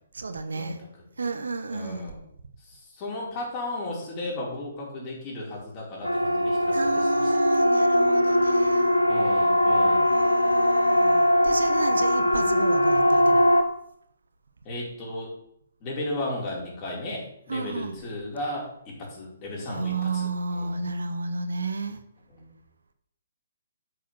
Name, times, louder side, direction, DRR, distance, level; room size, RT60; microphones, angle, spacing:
voice 1, 0.1-0.8 1.2-2.1 6.7-8.9 10.1-13.5 17.5-18.0 19.7-22.0, right 3 dB, 70° right, 9 dB, 1.1 m, -32 dB
voice 2, 1.7-2.2 2.7-7.3 9.1-10.1 14.6-15.3 15.8-20.9 22.3-22.5, left 1 dB, 30° left, -4 dB, 5.1 m, -35 dB
Siren, 6.0-13.6, equal, 85° left, 1.0 m, -21 dB
8.5 x 6.8 x 7.5 m, 0.71 s
figure-of-eight pair, 130°, 0 cm